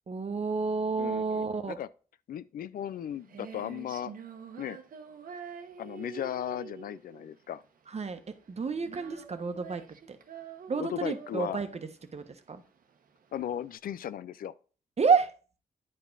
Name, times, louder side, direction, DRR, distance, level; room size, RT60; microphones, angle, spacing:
voice 1, 0.1-1.8 7.9-8.2 8.5-9.8 10.1-10.2 10.7-11.7 12.1-12.6 15.0-15.3, right 5 dB, 45° right, 1.2 m, -29 dB
voice 2, 1.0-1.9 2.3-4.1 4.6-4.8 5.8-7.6 10.8-11.6 13.3-14.5, left 10 dB, 80° left, 0.4 m, -36 dB
Female singing, 2.8-13.8, right 7 dB, 75° right, 1.1 m, -47 dB
10.0 x 4.9 x 3.9 m
cardioid pair, 65°, 15 cm